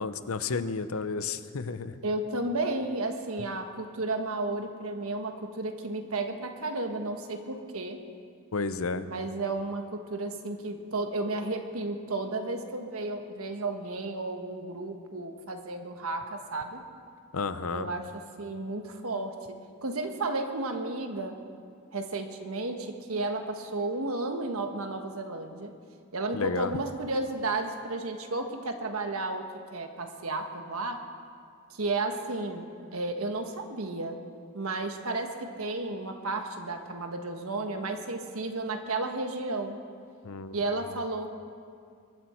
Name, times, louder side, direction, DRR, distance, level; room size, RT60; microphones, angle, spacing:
voice 1, 0.0-2.0 8.5-9.1 17.3-17.9 26.3-26.7 40.2-40.6, left 4 dB, 80° left, 12 dB, 0.7 m, -32 dB
voice 2, 2.0-8.0 9.0-16.8 17.7-18.1 18.4-21.4 21.9-25.7 26.1-31.0 31.7-34.2 34.5-39.8 40.5-41.3, right 2 dB, 85° right, 5 dB, 1.4 m, -33 dB
22.5 x 12.5 x 4.5 m, 2.3 s
head